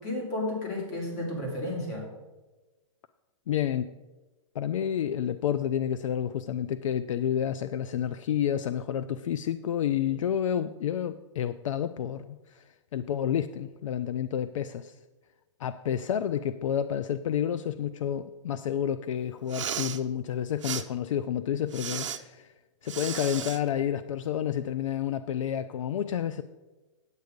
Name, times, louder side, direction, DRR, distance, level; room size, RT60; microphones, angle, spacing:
voice 1, 0.0-2.1, left 1 dB, 35° left, 0 dB, 3.1 m, -32 dB
voice 2, 3.5-3.9 4.5-15.0 15.6-22.5 22.8-26.4, left 9 dB, 75° left, 13 dB, 0.5 m, -30 dB
Respiratory sounds, 19.4-20.0 20.6-20.8 21.7-22.2 22.9-23.6, right 8 dB, 75° right, 0.8 m, -34 dB
9.4 x 8.2 x 5.1 m, 1.2 s
hypercardioid pair, 160°, 16 cm